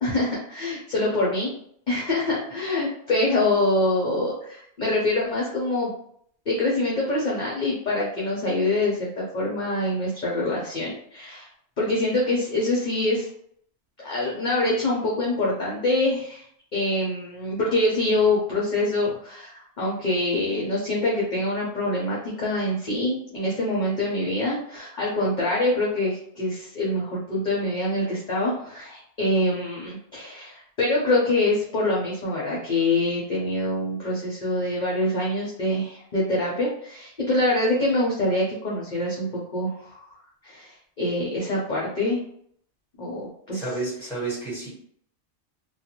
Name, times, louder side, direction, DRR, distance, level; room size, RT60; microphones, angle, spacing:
voice 1, 0.0-1.5 1.9-5.9 6.5-11.5 11.8-13.3 14.0-16.5 16.7-40.1 40.4-42.2 43.0-43.2 43.5-43.6, left 2 dB, 50° left, -4 dB, 0.7 m, -25 dB
voice 2, 43.5-44.7, right 3 dB, ahead, -8 dB, 1.4 m, -30 dB
2.4 x 2.2 x 2.8 m, 0.65 s
omnidirectional pair, 1.2 m